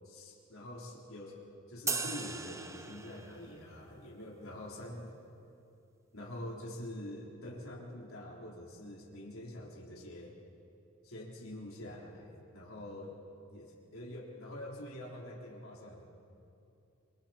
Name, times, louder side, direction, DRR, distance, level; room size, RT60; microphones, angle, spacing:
voice 1, 0.0-1.4 1.7-5.2 6.1-10.3 11.0-13.2 13.5-16.1, left 1 dB, 85° left, -3 dB, 3.8 m, -45 dB
sound 1, 1.9-3.5, right 4 dB, 15° right, 0.7 m, -37 dB
27.0 x 25.0 x 4.4 m, 2.7 s
head